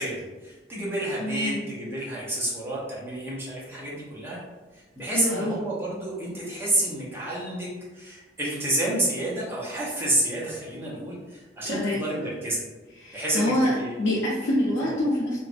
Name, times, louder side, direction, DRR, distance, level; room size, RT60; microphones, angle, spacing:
voice 1, 0.0-4.4 4.7-12.6 13.1-13.9, right 1 dB, 15° right, -6 dB, 0.7 m, -29 dB
voice 2, 1.2-1.6 5.0-5.6 11.6-12.0 12.9-15.4, left 1 dB, 85° left, -6 dB, 0.5 m, -26 dB
3.0 x 2.3 x 2.5 m, 1.2 s
head